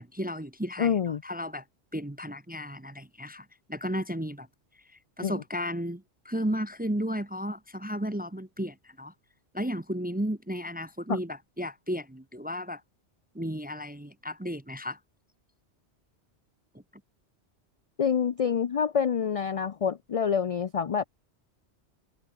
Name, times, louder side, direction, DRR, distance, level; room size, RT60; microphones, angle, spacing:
voice 1, 0.0-1.6 1.9-4.5 5.2-9.1 9.5-12.8 13.3-15.0, equal, 10° right, 0.5 m, -34 dB
voice 2, 0.8-1.2 5.2-5.3 18.0-21.0, left 7 dB, 50° left, 0.4 m, -27 dB
omnidirectional pair, 1.2 m